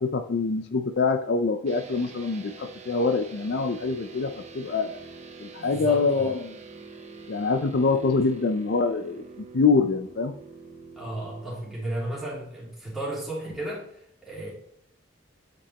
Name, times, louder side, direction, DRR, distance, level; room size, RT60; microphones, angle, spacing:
voice 1, 0.0-5.0 5.4-6.5 7.3-9.2 9.5-10.3, left 4 dB, 60° left, 7 dB, 0.5 m, -25 dB
sound 1, 1.7-11.4, right 4 dB, 35° right, 0.8 m, -45 dB
voice 2, 5.5-6.3 11.0-13.8 14.2-14.5, right 1 dB, ahead, -6 dB, 2.8 m, -34 dB
8.4 x 5.3 x 2.9 m, 0.73 s
head